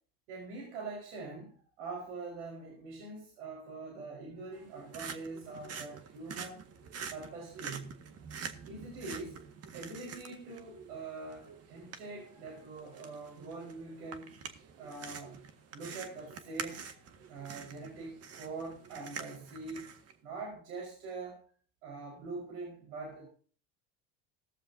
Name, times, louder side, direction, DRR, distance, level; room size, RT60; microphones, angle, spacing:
voice 1, 0.3-6.6 7.1-8.0 8.4-9.4 9.7-14.3 14.8-15.4 15.7-16.9 17.3-19.9 20.2-21.4 21.8-23.3, right 3 dB, 90° right, -1 dB, 4.8 m, -44 dB
sound 1, 4.5-20.1, right 6 dB, 45° right, 1.8 m, -46 dB
16.5 x 13.5 x 2.8 m, 0.43 s
supercardioid pair, 100°, 34 cm